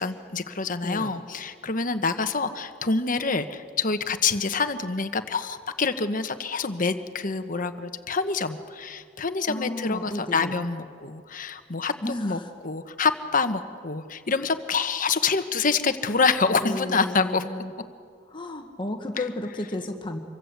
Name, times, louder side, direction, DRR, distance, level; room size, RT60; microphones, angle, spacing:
voice 1, 0.0-11.9 12.2-12.4 12.6-17.4, left 4 dB, 45° left, 9 dB, 1.3 m, -26 dB
voice 2, 0.8-1.1 9.5-10.6 12.0-12.5 16.6-17.7 18.3-20.2, left 1 dB, 25° left, 4 dB, 1.6 m, -33 dB
26.5 x 23.5 x 8.1 m, 2.2 s
head